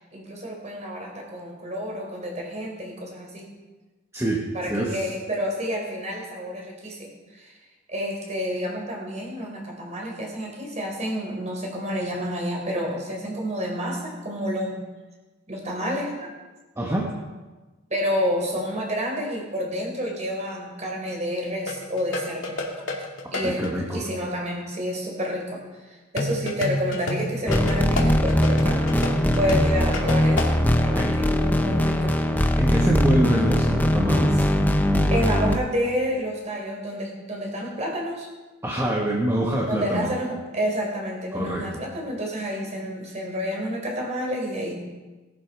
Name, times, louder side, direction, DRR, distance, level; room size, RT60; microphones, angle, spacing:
voice 1, 0.0-3.5 4.5-7.5 7.9-14.8 15.5-16.3 17.9-22.8 23.3-32.2 35.1-38.3 39.7-44.7, equal, 35° right, 0 dB, 4.1 m, -29 dB
voice 2, 4.1-5.0 16.8-17.1 23.4-24.1 31.0-31.1 32.6-34.5 38.6-40.1 41.3-41.8, right 1 dB, 15° right, -3 dB, 1.5 m, -25 dB
sound 1, 21.7-23.7 26.2-30.5, left 2 dB, 65° left, 2.3 m, -29 dB
sound 2, 27.5-35.6, equal, 10° left, 0.8 m, -21 dB
18.5 x 11.5 x 4.9 m, 1.2 s
head